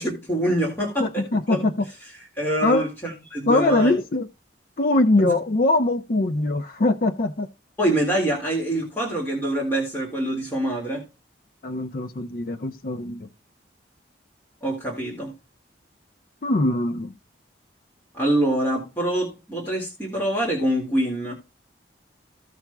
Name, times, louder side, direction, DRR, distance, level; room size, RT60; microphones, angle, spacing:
voice 1, 0.0-1.7 2.4-4.0 5.2-5.3 7.8-11.0 14.6-15.3 18.1-21.3, right 1 dB, 10° left, 1.9 m, -25 dB
voice 2, 1.0-1.7 2.6-2.8 3.5-4.3 4.8-7.5 11.6-13.3 16.4-17.1, left 2 dB, 50° left, 0.5 m, -22 dB
15.5 x 5.8 x 2.2 m
head